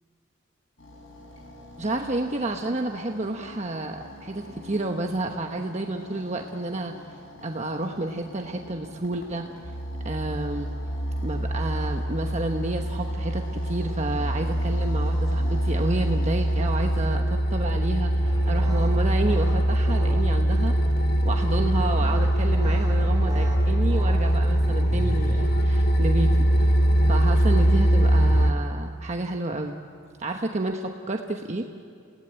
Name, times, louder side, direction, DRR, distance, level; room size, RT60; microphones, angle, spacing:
sound 1, 0.8-17.1, left 1 dB, 90° left, 5.3 m, -45 dB
voice 1, 1.8-6.9 7.4-9.5 10.0-10.7 11.2-20.7 21.2-26.8 27.1-29.8 30.2-31.7, right 2 dB, 35° right, 3 dB, 1.1 m, -30 dB
sound 2, 9.6-28.5, right 1 dB, 50° left, 1.8 m, -23 dB
sound 3, 18.2-25.8, equal, 20° right, 5.3 m, -39 dB
29.5 x 18.0 x 8.9 m, 2.4 s
head